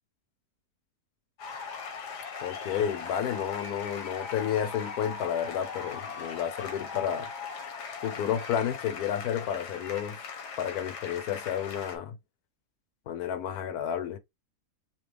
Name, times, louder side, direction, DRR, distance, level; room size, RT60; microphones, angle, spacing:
sound 1, 1.4-12.0, left 5 dB, 90° left, 1.6 m, -39 dB
voice 1, 2.4-7.3 8.0-10.2 10.6-12.1 13.1-14.2, left 9 dB, 75° left, 1.1 m, -31 dB
5.7 x 2.1 x 3.3 m
omnidirectional pair, 1.7 m